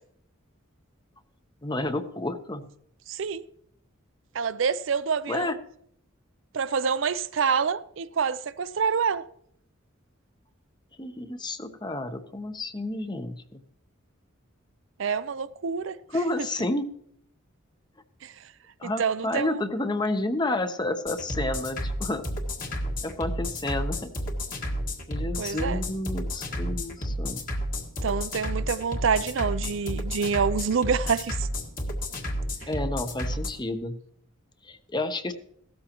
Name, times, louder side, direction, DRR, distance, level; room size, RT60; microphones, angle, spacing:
voice 1, 1.6-2.7 5.3-5.6 11.0-13.6 16.1-16.9 18.8-22.3 23.0-24.1 25.1-27.4 32.7-34.0 34.6-35.3, left 2 dB, 20° left, 0.8 m, -30 dB
voice 2, 3.1-3.4 4.3-5.5 6.5-9.2 15.0-16.0 18.2-18.3 18.8-19.6 25.4-25.8 28.0-31.5, right 6 dB, 65° right, 0.5 m, -27 dB
sound 1, 21.1-33.5, equal, 45° left, 1.7 m, -31 dB
16.0 x 13.0 x 3.0 m
head